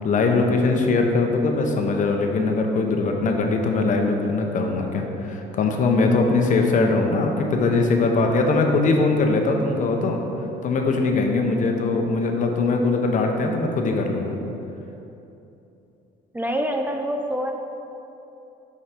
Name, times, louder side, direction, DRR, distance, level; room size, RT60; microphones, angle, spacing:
voice 1, 0.0-10.2 10.6-14.4, left 3 dB, 50° left, 3 dB, 0.9 m, -21 dB
voice 2, 16.3-17.5, equal, 10° right, 3 dB, 0.4 m, -25 dB
7.2 x 4.9 x 5.1 m, 2.9 s
cardioid pair, 110°, 17 cm